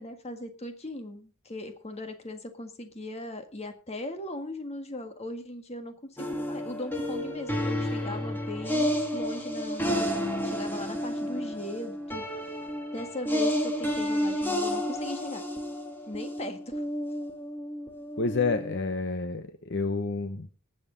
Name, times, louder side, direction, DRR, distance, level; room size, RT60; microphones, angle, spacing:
voice 1, 0.0-12.2 12.9-15.4 16.1-16.8, left 1 dB, 30° left, 7 dB, 1.7 m, -38 dB
sound 1, 6.2-18.9, equal, 10° left, 2.0 m, -31 dB
voice 2, 18.2-20.5, left 3 dB, 50° left, 8 dB, 0.9 m, -29 dB
19.5 x 8.0 x 3.9 m, 0.35 s
head